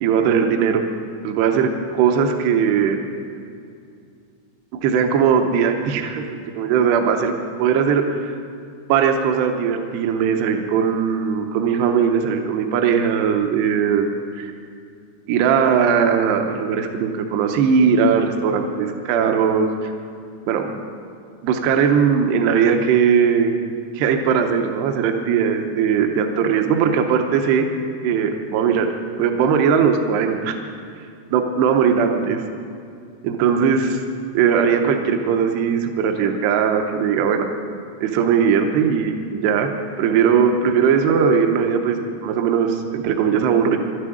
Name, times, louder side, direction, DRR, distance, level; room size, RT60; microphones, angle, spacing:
voice 1, 0.0-0.8 1.2-3.0 4.7-7.3 7.6-8.3 8.9-14.1 14.4-14.5 15.3-19.9 20.5-20.8 21.4-23.5 23.9-27.7 28.0-28.9 29.2-30.6 31.3-32.4 33.2-34.0 34.3-37.5 38.0-39.7 40.0-43.8, right 7 dB, 80° right, 4 dB, 2.8 m, -19 dB
12.5 x 10.0 x 9.0 m, 2.4 s
omnidirectional pair, 4.9 m